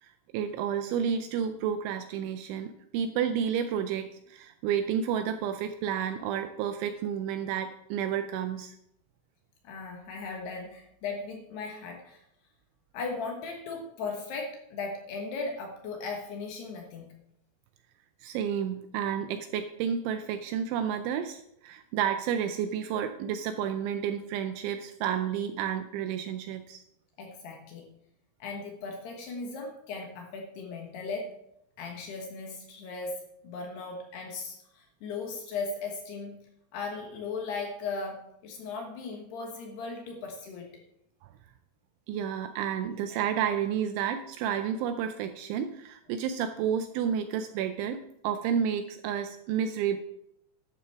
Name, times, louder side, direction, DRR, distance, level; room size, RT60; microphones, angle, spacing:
voice 1, 0.0-8.7 18.2-26.8 42.1-50.0, right 8 dB, 85° right, 8 dB, 2.8 m, -31 dB
voice 2, 9.6-12.2 12.9-17.1 27.2-27.9 28.4-31.4 31.8-36.4 36.7-40.7, left 4 dB, 65° left, 2 dB, 2.9 m, -37 dB
12.0 x 11.0 x 3.5 m, 0.77 s
omnidirectional pair, 5.9 m